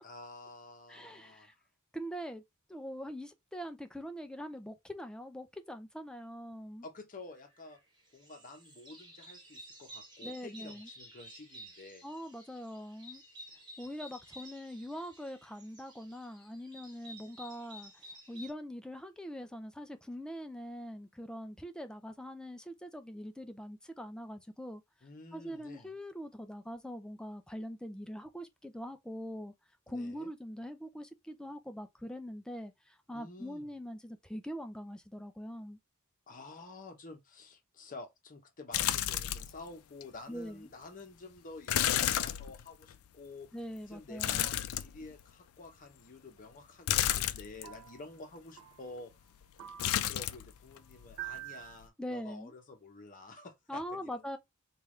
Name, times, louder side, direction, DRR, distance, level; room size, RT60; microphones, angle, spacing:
voice 1, 0.0-1.5 6.8-7.8 8.1-12.1 25.0-25.9 29.9-30.3 33.1-33.7 36.3-43.5 43.9-49.1 50.1-54.2, left 2 dB, 40° left, 0.9 m, -50 dB
voice 2, 0.9-1.5 1.9-2.4 2.7-6.9 10.2-10.9 12.0-13.2 13.8-24.8 25.3-29.5 29.9-35.8 40.3-40.7 43.5-44.5 52.0-52.5 53.7-54.4, equal, 5° left, 0.3 m, -43 dB
sound 1, 7.3-7.8 8.1-18.5, right 1 dB, 20° right, 1.1 m, -52 dB
sound 2, 38.7-39.6 40.0-40.1 41.7-43.0 44.2-45.3 46.9-47.7 49.8-50.5 50.8-51.4 51.7-51.9, left 12 dB, 75° left, 0.4 m, -31 dB
sound 3, 46.4-46.5 47.6-48.1 48.6-49.0 49.6-50.2 51.2-51.8, right 14 dB, 85° right, 0.4 m, -46 dB
3.4 x 2.4 x 3.1 m
head